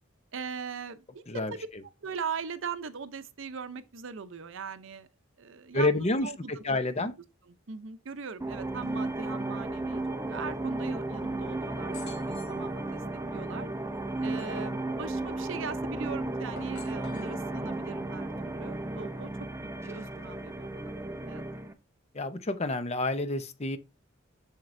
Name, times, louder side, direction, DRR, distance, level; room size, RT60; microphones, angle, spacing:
voice 1, 0.3-1.7 2.0-5.1 5.4-6.8 7.5-10.0 10.3-13.0 13.3-13.7 14.2-19.3 19.6-20.9 21.3-21.4, right 5 dB, 65° right, 0.6 m, -40 dB
voice 2, 5.7-7.1 22.1-23.8, left 2 dB, 30° left, 0.7 m, -29 dB
sound 1, 8.4-21.7, right 2 dB, 15° right, 0.7 m, -34 dB
sound 2, 11.9-12.6 13.9-14.8 16.4-17.3, left 3 dB, 60° left, 3.7 m, -48 dB
7.4 x 6.6 x 2.6 m
head